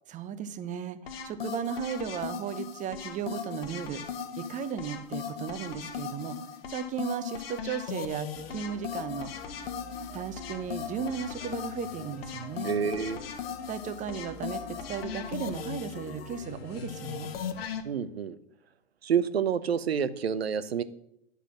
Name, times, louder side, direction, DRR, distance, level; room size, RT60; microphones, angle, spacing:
voice 1, 0.1-9.3 10.1-12.8 13.7-17.3, right 7 dB, 25° right, 12 dB, 0.9 m, -36 dB
sound 1, 1.1-17.8, left 7 dB, 70° left, 1.3 m, -38 dB
sound 2, 8.3-17.7, left 6 dB, 85° left, 0.9 m, -47 dB
voice 2, 12.6-13.2 17.8-18.4 19.0-20.8, right 7 dB, 80° right, 14 dB, 0.8 m, -28 dB
10.5 x 6.8 x 6.2 m, 0.78 s
figure-of-eight pair, 100°, 31 cm